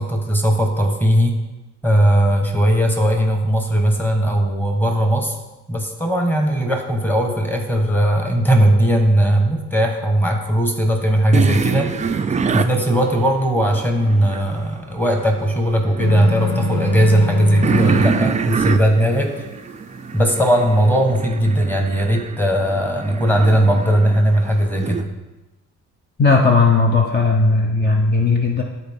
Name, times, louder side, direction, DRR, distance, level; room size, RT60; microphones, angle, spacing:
voice 1, 0.0-1.4 1.8-5.4 5.7-12.3 12.5-19.3 20.1-25.1, right 1 dB, 5° left, 2 dB, 1.3 m, -18 dB
sound 1, 11.3-14.6 15.0-25.0, right 5 dB, 25° right, 0.4 m, -26 dB
sound 2, 16.0-18.2, left 6 dB, 70° left, 1.1 m, -25 dB
voice 2, 26.2-28.6, left 3 dB, 35° left, 1 dB, 0.7 m, -16 dB
11.5 x 4.2 x 3.6 m, 1.1 s
cardioid pair, 90°, 30 cm